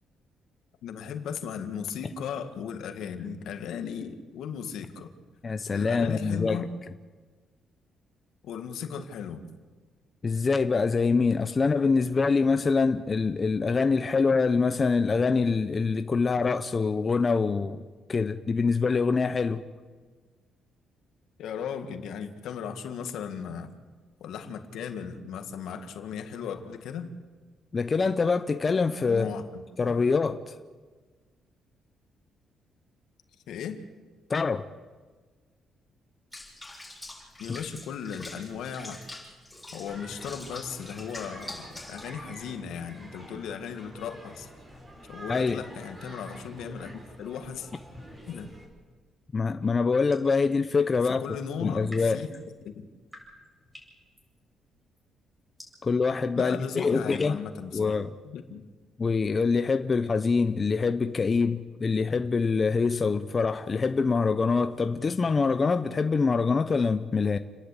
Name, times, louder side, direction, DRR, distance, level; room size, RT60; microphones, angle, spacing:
voice 1, 0.8-5.1 5.7-6.7 8.4-9.5 21.4-23.7 24.2-27.1 29.1-29.4 29.8-29.9 33.5-33.8 37.4-39.0 39.7-44.5 45.1-47.7 48.3-48.5 51.2-52.3 52.6-52.9 56.4-57.9 58.2-58.7, left 7 dB, 80° left, 1.9 m, -36 dB
voice 2, 5.4-6.7 10.2-17.8 18.1-19.6 27.7-29.3 29.8-30.5 34.3-34.7 45.3-45.6 49.3-51.2 51.6-52.2 55.8-57.4 57.7-58.1 59.0-67.4, left 4 dB, 35° left, 0.8 m, -25 dB
Water / Bathtub (filling or washing), 36.3-42.1, left 2 dB, 5° left, 7.6 m, -44 dB
sound 1, 39.9-48.7, right 1 dB, 25° right, 6.7 m, -47 dB
sound 2, 49.6-50.4 51.5-59.2, equal, 10° right, 7.8 m, -54 dB
30.0 x 11.0 x 8.5 m
cardioid pair, 90°, 0 cm